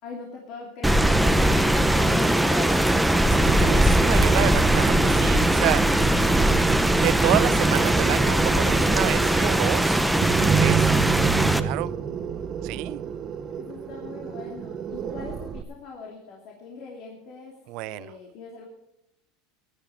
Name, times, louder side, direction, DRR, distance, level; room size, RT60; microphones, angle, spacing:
voice 1, 0.0-3.2 13.6-17.5 17.8-18.7, left 5 dB, 55° left, 2.7 m, -40 dB
Rain, 0.8-11.6, right 1 dB, 5° right, 0.8 m, -20 dB
sound 1, 3.3-15.6, right 7 dB, 35° right, 0.9 m, -29 dB
voice 2, 3.4-5.9 6.6-10.0 10.4-10.9 11.6-11.9 12.6-13.0 17.7-18.1, right 18 dB, 60° right, 0.4 m, -29 dB
16.0 x 10.5 x 4.9 m
supercardioid pair, 135°, 0 cm